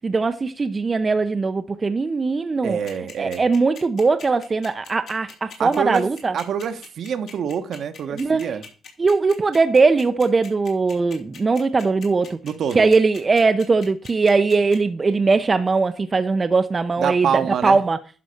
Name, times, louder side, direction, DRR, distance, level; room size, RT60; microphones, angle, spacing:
voice 1, 0.0-2.8 3.2-6.4 8.1-8.6 9.0-12.4 12.7-18.0, right 4 dB, 30° right, 0.6 m, -20 dB
voice 2, 2.6-3.4 5.6-6.1 6.3-8.6 12.4-12.9 17.0-17.8, right 7 dB, 65° right, 1.1 m, -26 dB
sound 1, 2.9-14.8, left 6 dB, 65° left, 3.0 m, -41 dB
11.0 x 4.1 x 6.4 m
cardioid pair, 90°, 0 cm